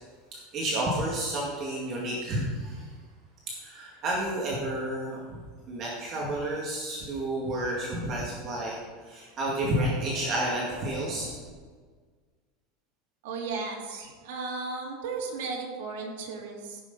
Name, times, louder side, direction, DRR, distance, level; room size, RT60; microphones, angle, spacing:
voice 1, 0.3-2.9 3.6-8.8 9.0-11.5, right 1 dB, 30° right, -4 dB, 2.0 m, -31 dB
voice 2, 13.2-16.8, right 4 dB, 70° right, -1 dB, 2.9 m, -35 dB
15.5 x 6.4 x 5.4 m, 1.5 s
supercardioid pair, 170°, 0 cm